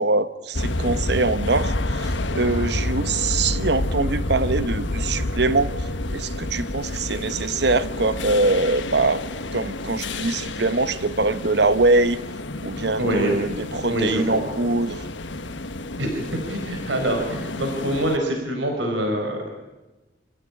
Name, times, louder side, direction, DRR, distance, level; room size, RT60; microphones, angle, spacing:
voice 1, 0.0-9.2 9.5-12.2 12.6-15.1, right 3 dB, 60° right, 13 dB, 1.1 m, -23 dB
sound 1, 0.5-18.2, left 2 dB, 80° left, 1.5 m, -29 dB
voice 2, 13.0-13.3 13.9-14.4 16.0-19.5, right 1 dB, 90° right, 3 dB, 4.8 m, -25 dB
28.0 x 16.0 x 9.8 m, 1.1 s
head